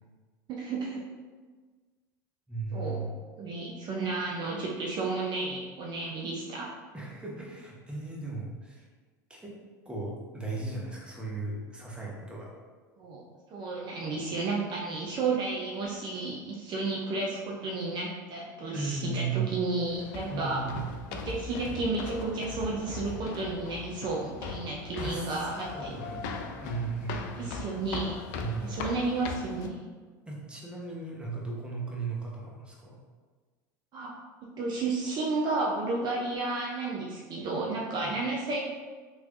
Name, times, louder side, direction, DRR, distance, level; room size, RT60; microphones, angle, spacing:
voice 1, 0.5-1.0 2.7-3.0 3.4-6.7 13.0-13.2 13.5-20.6 21.1-25.9 27.4-28.2 28.6-29.8 33.9-34.2 34.4-38.6, right 3 dB, 45° right, -3 dB, 0.6 m, -32 dB
voice 2, 2.5-3.1 6.9-8.9 9.3-9.5 9.8-12.5 18.7-19.5 20.3-20.8 24.9-25.3 25.7-27.6 28.3-28.8 30.3-33.0 38.0-38.1, right 4 dB, 10° right, -3 dB, 0.9 m, -36 dB
walking up stairs, 19.9-29.7, left 5 dB, 65° left, 0.4 m, -39 dB
3.1 x 3.1 x 2.5 m, 1.4 s
hypercardioid pair, 85°, 11 cm